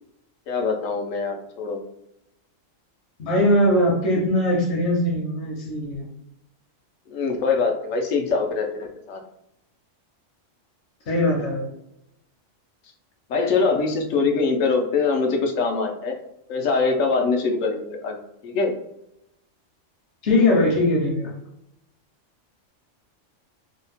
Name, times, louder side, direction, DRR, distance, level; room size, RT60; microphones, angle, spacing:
voice 1, 0.5-1.8 7.1-9.2 13.3-16.2 16.5-18.7, left 4 dB, 90° left, 3 dB, 1.0 m, -23 dB
voice 2, 3.2-6.1 11.1-11.7 20.2-21.3, left 1 dB, 65° left, -2 dB, 1.0 m, -21 dB
2.8 x 2.1 x 4.0 m, 0.82 s
omnidirectional pair, 1.3 m